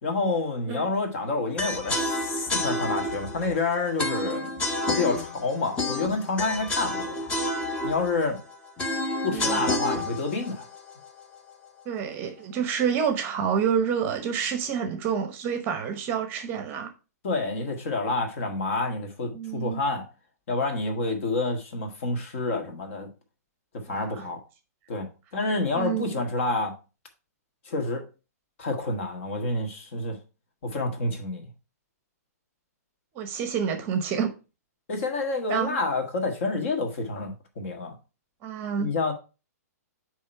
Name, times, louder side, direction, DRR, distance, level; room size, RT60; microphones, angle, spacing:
voice 1, 0.0-4.5 4.8-7.3 7.8-8.4 9.2-10.7 17.2-20.0 20.5-23.1 23.7-24.4 24.9-25.1 25.3-26.7 27.6-28.1 28.6-30.2 30.6-31.4 34.9-37.9 38.8-39.1, left 3 dB, 50° left, 1.8 m, -28 dB
sound 1, 1.6-11.6, left 1 dB, 15° left, 0.7 m, -30 dB
voice 2, 9.2-9.6 11.8-16.9 19.3-19.8 23.9-24.3 25.7-26.1 33.1-34.3 35.5-35.8 38.4-38.9, right 7 dB, 25° right, 0.8 m, -28 dB
8.4 x 3.2 x 4.5 m
hypercardioid pair, 160°, 9 cm